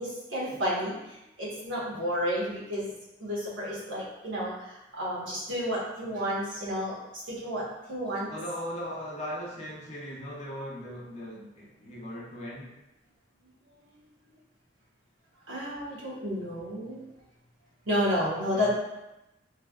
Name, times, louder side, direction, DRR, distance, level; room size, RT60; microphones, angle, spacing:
voice 1, 0.0-2.9 3.2-8.3 15.5-17.0 17.9-18.7, equal, 80° right, -6 dB, 1.0 m, -31 dB
voice 2, 8.3-12.8 18.5-18.7, equal, 35° left, -4 dB, 0.6 m, -38 dB
3.2 x 2.1 x 2.3 m, 0.93 s
head